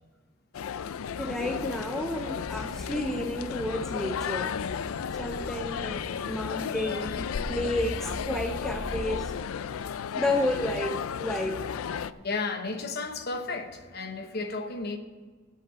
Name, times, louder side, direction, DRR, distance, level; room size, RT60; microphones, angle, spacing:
sound 1, 0.5-12.1, left 7 dB, 85° left, 0.4 m, -34 dB
voice 1, 1.2-4.5 5.1-9.3 10.1-11.7, left 1 dB, ahead, 0.4 m, -31 dB
sound 2, 2.4-9.2, equal, 25° right, 0.8 m, -43 dB
voice 2, 6.7-7.2 9.8-9.9 12.2-15.0, left 3 dB, 50° left, 1.0 m, -34 dB
8.3 x 7.9 x 7.5 m
head